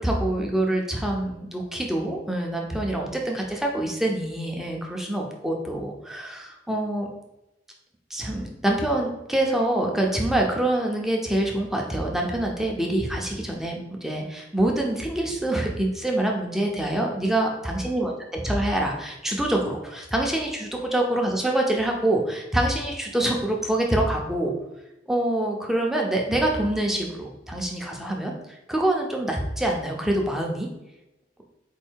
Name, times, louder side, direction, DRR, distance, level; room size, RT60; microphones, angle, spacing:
voice 1, 0.0-7.1 8.1-18.1 18.4-24.5 25.1-28.3 28.7-30.7, right 1 dB, ahead, 0 dB, 0.6 m, -25 dB
4.5 x 2.6 x 4.5 m, 0.93 s
head